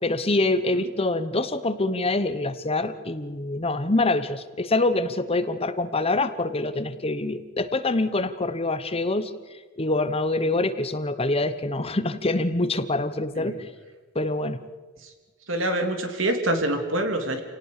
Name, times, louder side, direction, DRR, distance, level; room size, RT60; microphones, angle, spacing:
voice 1, 0.0-13.7 14.1-14.6, left 2 dB, 30° left, 12 dB, 1.0 m, -25 dB
voice 2, 15.5-17.4, right 1 dB, 65° right, 5 dB, 3.0 m, -25 dB
28.0 x 18.5 x 6.7 m, 1.3 s
head